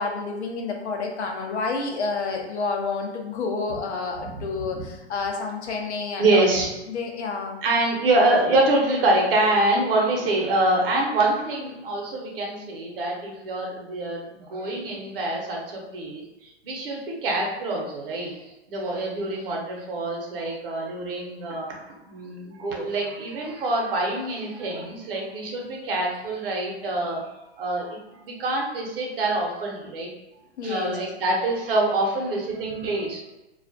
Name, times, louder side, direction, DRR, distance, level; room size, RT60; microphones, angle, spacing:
voice 1, 0.0-6.5 6.9-7.6 30.6-31.0, left 4 dB, 80° left, 2 dB, 0.6 m, -29 dB
voice 2, 6.2-6.7 7.6-18.4 18.7-27.2 27.6-30.1 30.6-33.2, right 2 dB, 55° right, -1 dB, 0.8 m, -25 dB
2.3 x 2.1 x 2.5 m, 0.96 s
hypercardioid pair, 130°, 33 cm